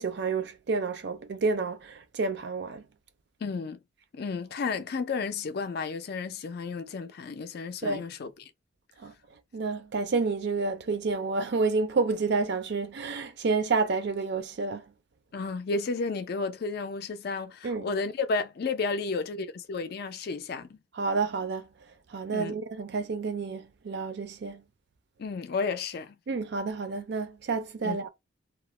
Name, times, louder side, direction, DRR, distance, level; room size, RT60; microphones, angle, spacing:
voice 1, 0.0-2.8 7.8-8.0 9.0-9.1 9.5-14.8 17.6-17.9 20.9-21.7 22.1-24.6 26.3-28.1, right 4 dB, 55° right, 0.4 m, -29 dB
voice 2, 3.4-3.8 4.1-8.3 15.3-20.8 22.3-22.6 25.2-26.2 27.8-28.0, left 4 dB, 50° left, 0.4 m, -32 dB
2.4 x 2.0 x 3.0 m
head